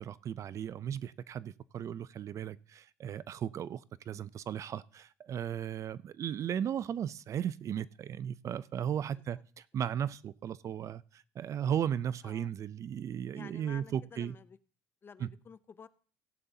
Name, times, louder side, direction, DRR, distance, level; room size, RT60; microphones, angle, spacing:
voice 1, 0.0-14.3 15.2-15.3, right 9 dB, 40° right, 0.4 m, -36 dB
voice 2, 13.3-14.6 15.0-15.9, left 6 dB, 25° left, 0.6 m, -51 dB
16.5 x 11.0 x 2.7 m
cardioid pair, 125°, 8 cm